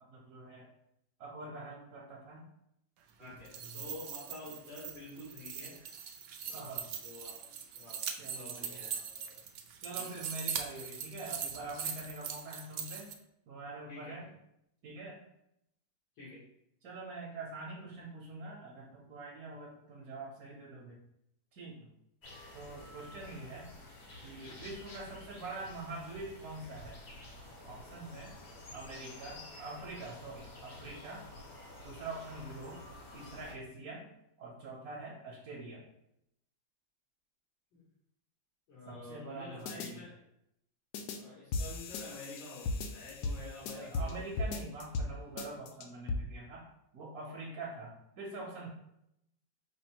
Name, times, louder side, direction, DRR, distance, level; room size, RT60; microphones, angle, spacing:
voice 1, 0.1-0.7 1.2-2.5 3.2-3.8 6.5-6.9 8.2-9.0 9.8-13.1 13.5-14.3 14.8-15.2 16.8-21.0 21.5-21.9 22.5-23.7 24.2-27.0 27.6-28.3 28.7-31.2 31.8-32.8 33.1-34.1 34.4-35.8 38.9-40.0 43.7-46.7 46.9-48.7, right 2 dB, 60° right, -4 dB, 1.2 m, -45 dB
voice 2, 3.2-5.8 6.4-6.7 7.0-7.3 7.7-8.0 8.3-9.4 10.0-10.2 13.9-14.2 16.2-16.4 37.7-37.8 38.7-40.2 41.2-44.5, left 2 dB, 90° left, -10 dB, 2.2 m, -49 dB
sound 1, 3.3-13.1, right 7 dB, 80° right, 0.7 m, -41 dB
sound 2, 22.2-33.5, left 1 dB, 50° left, 0.8 m, -50 dB
sound 3, 39.7-39.9 40.9-41.2 41.5-44.1 44.4-45.1 45.4-46.2, left 3 dB, 75° left, 1.0 m, -36 dB
5.1 x 2.1 x 4.4 m, 0.78 s
omnidirectional pair, 2.1 m